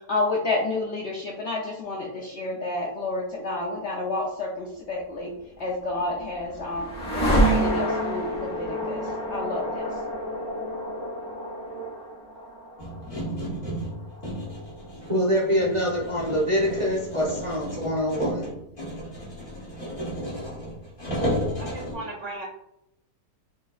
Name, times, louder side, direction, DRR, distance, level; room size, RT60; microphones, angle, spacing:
voice 1, 0.1-5.3 5.6-6.8 7.1-9.0 9.3-9.9, left 2 dB, 60° left, -2 dB, 0.7 m, -30 dB
sound 1, 5.7-15.8, right 1 dB, 5° left, 1.3 m, -29 dB
sound 2, 12.8-21.9, equal, 35° left, 1.4 m, -33 dB
voice 2, 15.1-18.5, equal, 30° right, -6 dB, 0.6 m, -25 dB
voice 3, 21.6-22.4, right 2 dB, 60° right, -1 dB, 0.9 m, -36 dB
5.4 x 3.0 x 2.4 m, 0.81 s
omnidirectional pair, 1.8 m